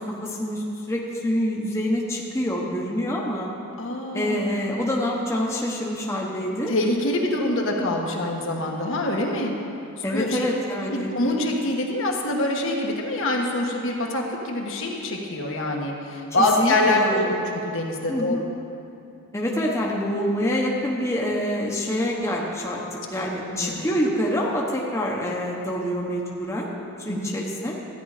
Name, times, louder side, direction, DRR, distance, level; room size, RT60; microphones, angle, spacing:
voice 1, 0.0-3.5 4.1-6.7 10.0-11.1 16.6-17.4 18.1-18.4 19.3-22.8 23.1-26.7 27.0-27.7, equal, 15° left, -3 dB, 1.0 m, -26 dB
voice 2, 3.8-4.5 6.7-9.5 10.1-10.4 10.9-18.4 23.5-23.9 27.1-27.3, left 1 dB, 60° left, 0 dB, 1.3 m, -25 dB
13.5 x 9.7 x 4.9 m, 2.7 s
head